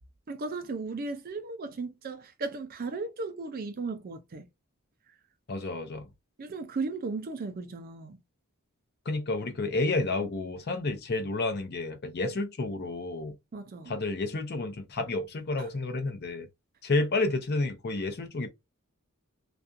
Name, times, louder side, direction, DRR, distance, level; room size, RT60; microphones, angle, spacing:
voice 1, 0.3-4.5 6.4-8.2 13.5-14.0 15.6-15.7, right 3 dB, 45° right, 0.4 m, -36 dB
voice 2, 5.5-6.1 9.1-13.4 13.9-16.5 16.8-18.5, left 2 dB, 50° left, 0.6 m, -30 dB
2.4 x 2.3 x 2.5 m
head